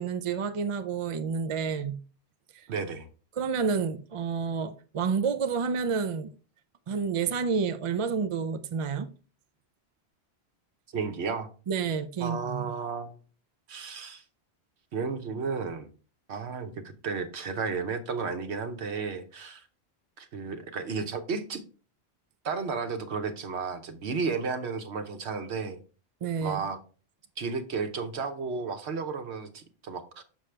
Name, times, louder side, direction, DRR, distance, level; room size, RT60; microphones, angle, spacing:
voice 1, 0.0-2.0 2.5-2.7 3.4-6.3 6.9-9.1 11.7-12.7 26.2-26.6, right 6 dB, 50° right, 0.4 m, -29 dB
voice 2, 2.7-3.1 10.9-11.5 12.2-13.2 13.7-14.2 14.9-15.9 16.3-19.7 20.2-21.6 22.4-25.8 26.4-26.8 27.4-30.2, right 5 dB, 80° right, 1.1 m, -33 dB
6.3 x 6.2 x 3.3 m
omnidirectional pair, 1.1 m